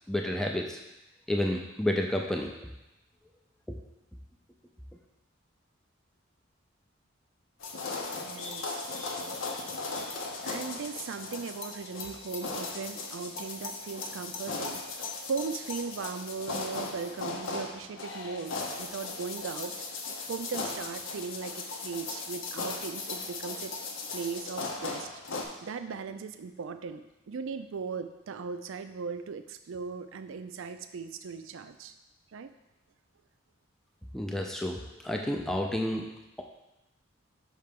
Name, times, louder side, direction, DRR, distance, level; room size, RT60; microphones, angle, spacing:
voice 1, 0.1-0.8 1.3-2.5 34.1-36.1, left 1 dB, ahead, 1 dB, 0.4 m, -30 dB
sound 1, 7.6-25.5, left 3 dB, 75° left, 0.7 m, -37 dB
voice 2, 8.1-9.7 10.4-14.8 15.2-19.7 20.3-23.7 24.1-31.9 32.3-32.5, right 5 dB, 80° right, 9 dB, 0.4 m, -38 dB
5.6 x 3.2 x 5.2 m, 0.96 s
head